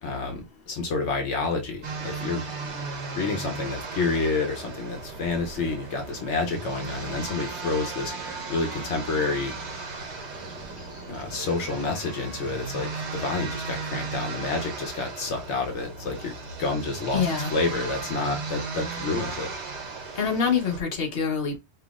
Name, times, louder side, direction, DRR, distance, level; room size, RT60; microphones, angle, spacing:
voice 1, 0.0-2.7 3.2-8.1 8.5-9.5 11.1-17.2 17.5-19.5, left 3 dB, 80° left, 1.1 m, -29 dB
sound 1, 1.8-20.8, right 4 dB, 75° right, 1.2 m, -36 dB
sound 2, 4.9-12.9, right 2 dB, 15° right, 0.8 m, -46 dB
voice 2, 17.1-17.5 20.2-21.6, left 6 dB, 60° left, 1.2 m, -25 dB
5.6 x 2.9 x 2.4 m
omnidirectional pair, 1.2 m